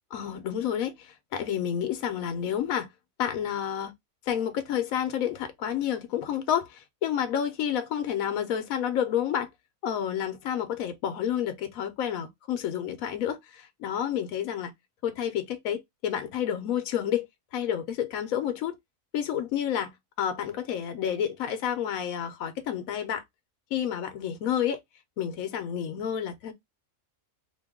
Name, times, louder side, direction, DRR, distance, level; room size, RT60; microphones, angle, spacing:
voice 1, 0.1-2.9 3.2-3.9 4.3-9.5 9.8-14.7 15.0-17.3 17.5-18.8 19.1-23.2 23.7-24.8 25.2-26.5, left 9 dB, 75° left, 1.1 m, -30 dB
2.9 x 2.2 x 3.4 m
omnidirectional pair, 1.5 m